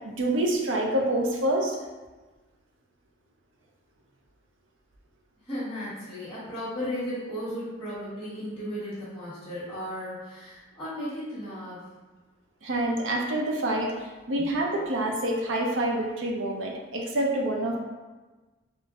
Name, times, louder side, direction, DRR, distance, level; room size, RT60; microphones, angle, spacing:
voice 1, 0.1-1.8 12.6-13.9 14.3-17.8, right 1 dB, 85° right, 0 dB, 0.6 m, -27 dB
voice 2, 5.5-11.8, equal, 5° left, -17 dB, 1.1 m, -35 dB
3.7 x 2.6 x 3.5 m, 1.2 s
head